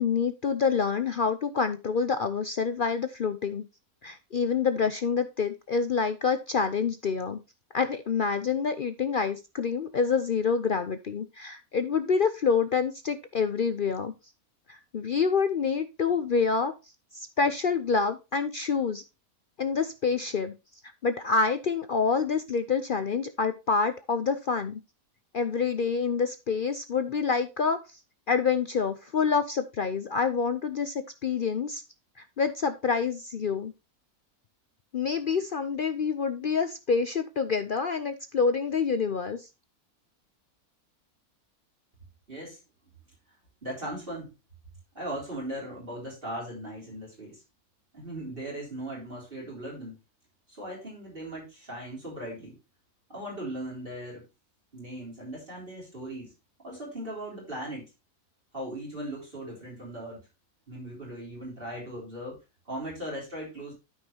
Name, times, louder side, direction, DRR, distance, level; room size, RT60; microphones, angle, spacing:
voice 1, 0.0-3.6 4.0-7.4 7.7-14.1 14.7-16.7 17.1-19.0 19.6-20.5 21.0-24.8 25.3-28.0 28.3-31.8 32.2-33.7 34.9-39.5, left 5 dB, 60° left, 10 dB, 0.5 m, -27 dB
voice 2, 42.3-42.6 43.6-44.3 44.9-47.4 47.9-49.9 50.5-52.6 53.1-54.2 54.7-56.3 56.6-57.8 58.5-60.2 60.7-62.4 62.7-63.7, right 1 dB, 35° right, -3 dB, 3.9 m, -38 dB
13.0 x 5.6 x 2.8 m, 0.27 s
omnidirectional pair, 1.6 m